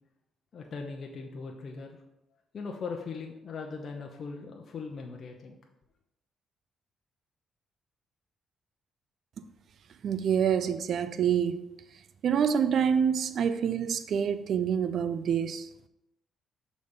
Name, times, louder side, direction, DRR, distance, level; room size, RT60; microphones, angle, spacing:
voice 1, 0.5-2.0 2.5-5.6, left 4 dB, 50° left, 0.8 m, -39 dB
voice 2, 10.0-11.7 12.2-15.7, right 7 dB, 65° right, 0.4 m, -27 dB
6.5 x 4.1 x 5.4 m
cardioid pair, 90°, 0 cm